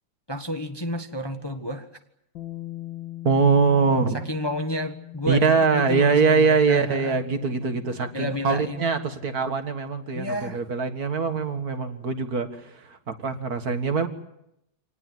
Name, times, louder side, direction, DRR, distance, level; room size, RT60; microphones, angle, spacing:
voice 1, 0.3-1.9 4.1-5.5 5.7-7.2 8.1-8.9 10.1-10.6, equal, 15° left, 6 dB, 1.2 m, -31 dB
Bass guitar, 2.4-8.6, left 15 dB, 90° left, 2.3 m, -41 dB
voice 2, 3.2-4.2 5.3-14.1, right 4 dB, 55° right, 8 dB, 2.2 m, -23 dB
26.5 x 19.0 x 9.3 m, 0.82 s
omnidirectional pair, 1.9 m